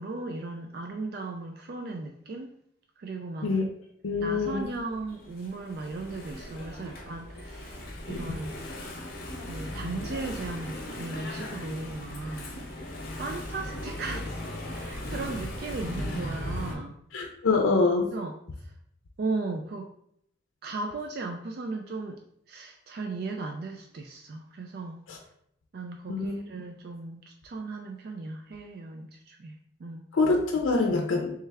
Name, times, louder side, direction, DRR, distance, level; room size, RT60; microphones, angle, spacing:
voice 1, 0.0-2.5 3.0-3.5 4.2-7.8 8.1-8.6 9.5-12.5 13.2-14.3 14.7-17.0 18.1-18.7 19.2-19.9 20.6-22.2 22.5-25.0 25.7-30.0, right 3 dB, 50° right, 3 dB, 0.3 m, -36 dB
voice 2, 4.0-4.7 17.1-18.1 25.1-25.2 26.1-26.3 30.1-31.3, left 3 dB, 80° left, 1 dB, 0.5 m, -25 dB
Engine / Mechanisms, 4.6-16.7, left 1 dB, 50° left, 0.8 m, -37 dB
3.4 x 3.2 x 3.3 m, 0.71 s
head